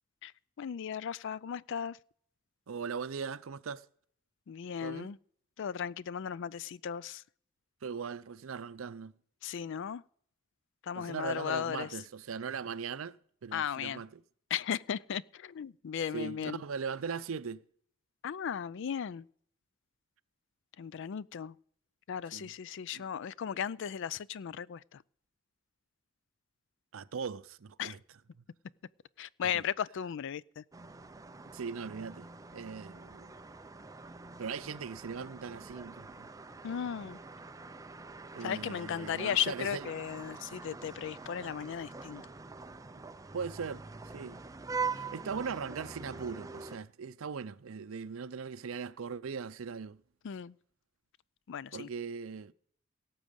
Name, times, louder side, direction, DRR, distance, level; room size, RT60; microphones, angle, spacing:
voice 1, 0.6-2.0 4.5-5.2 5.6-7.2 9.4-10.0 10.8-11.9 13.5-14.0 14.5-16.6 18.2-19.3 20.8-21.6 22.1-25.0 27.8-28.0 29.2-30.6 36.6-37.2 38.4-42.2 50.2-50.6 51.5-51.9, left 8 dB, 65° left, 0.4 m, -36 dB
voice 2, 2.7-3.9 4.8-5.1 7.8-9.1 11.0-14.2 16.1-17.6 22.3-22.5 22.9-23.1 23.4-23.6 26.9-28.0 28.4-28.5 29.4-29.6 31.5-33.3 34.4-36.3 38.3-39.9 42.9-43.0 43.3-44.4 44.8-50.0 51.7-52.5, right 6 dB, 75° right, 0.5 m, -40 dB
sound 1, 30.7-46.8, right 4 dB, 15° right, 0.5 m, -44 dB
17.5 x 7.4 x 5.2 m
head